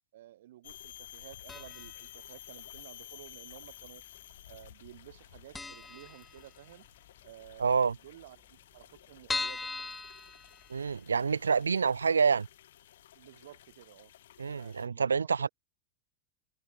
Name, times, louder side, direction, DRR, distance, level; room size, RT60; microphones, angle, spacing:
voice 1, 0.1-4.0 4.5-6.9 7.2-9.7 13.2-14.1 14.5-15.5, right 14 dB, 65° right, 6.0 m, -53 dB
sound 1, 0.6-14.9, left 12 dB, 70° left, 6.4 m, -53 dB
sound 2, 1.5-2.0 2.3-2.4 3.3-4.0 4.3-4.5 4.7-4.8 5.2-5.3 5.5-6.9 7.2-7.3 7.6-7.7 7.9-8.0 8.5-11.1 11.6-11.7 12.0-12.1, left 3 dB, 10° left, 0.9 m, -39 dB
voice 2, 7.6-8.0 10.7-12.5 14.4-15.5, right 5 dB, 85° right, 0.7 m, -27 dB
hypercardioid pair, 95°, 0 cm